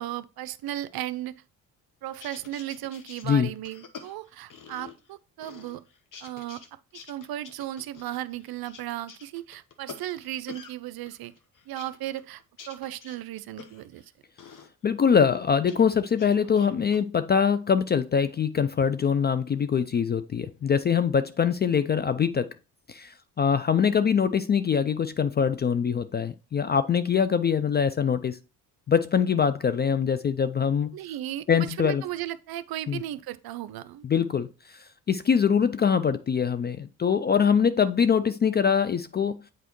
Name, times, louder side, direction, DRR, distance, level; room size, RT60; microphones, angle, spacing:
voice 1, 0.0-1.3 2.0-5.8 6.2-6.6 7.1-11.3 11.7-14.0 30.9-34.0, right 13 dB, 55° right, 0.6 m, -35 dB
sound 1, 2.1-5.1 5.4-6.7 6.9-10.8 11.1-14.0 14.4-14.7 15.1-15.8 16.1-17.0, left 6 dB, 45° left, 1.1 m, -47 dB
voice 2, 14.8-22.5 22.9-28.4 28.9-31.0 31.5-32.0 32.9-33.0 34.0-39.4, left 7 dB, 25° left, 0.3 m, -23 dB
8.0 x 4.5 x 3.0 m
hypercardioid pair, 50°, 45 cm